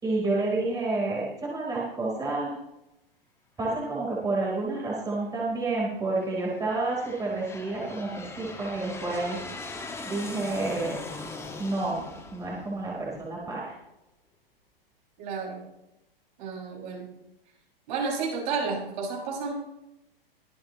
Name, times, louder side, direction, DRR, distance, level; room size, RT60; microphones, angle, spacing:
voice 1, 0.0-2.5 3.6-9.4 10.0-10.9 11.6-12.0 12.3-13.7, right 2 dB, 10° right, -4 dB, 3.9 m, -29 dB
Aircraft, 4.6-5.2 5.9-13.5, left 3 dB, 10° left, 1.7 m, -41 dB
voice 2, 15.2-15.6 16.4-17.1 17.9-19.6, right 5 dB, 55° right, -2 dB, 6.0 m, -31 dB
23.5 x 8.9 x 3.1 m, 0.90 s
hypercardioid pair, 135°, 30 cm